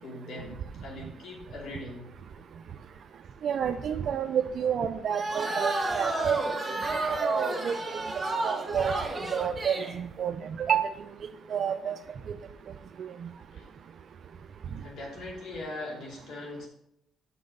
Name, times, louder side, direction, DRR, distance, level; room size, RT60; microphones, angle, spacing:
voice 1, 0.0-2.1 13.5-13.7 14.8-16.7, left 2 dB, 75° left, -2 dB, 2.4 m, -40 dB
voice 2, 3.4-6.4 7.1-8.0 8.4-8.9 9.3-10.3 10.6-10.9 11.5-11.9 13.0-13.1, right 8 dB, 60° right, 8 dB, 0.4 m, -29 dB
sound 1, 5.1-10.0, right 2 dB, 20° right, 1.3 m, -31 dB
6.1 x 5.9 x 5.1 m, 0.80 s
cardioid pair, 90°, 0 cm